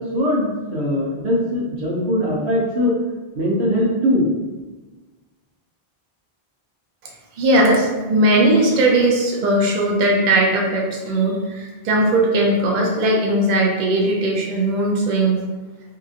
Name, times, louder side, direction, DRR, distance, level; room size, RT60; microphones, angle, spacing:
voice 1, 0.0-3.0 3.3-4.3, left 1 dB, 85° right, -3 dB, 1.0 m, -21 dB
voice 2, 7.4-15.4, right 1 dB, 55° right, -1 dB, 0.6 m, -18 dB
2.8 x 2.6 x 2.4 m, 1.2 s
omnidirectional pair, 1.1 m